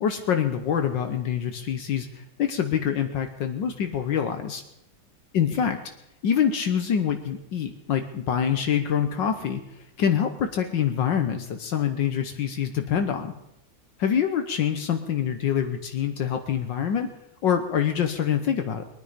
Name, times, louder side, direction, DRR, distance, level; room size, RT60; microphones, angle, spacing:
voice 1, 0.0-4.6 5.3-5.8 6.2-9.6 10.0-13.3 14.0-17.1 17.4-18.8, left 8 dB, 65° left, 7 dB, 1.6 m, -25 dB
22.0 x 9.9 x 5.1 m, 0.83 s
omnidirectional pair, 2.2 m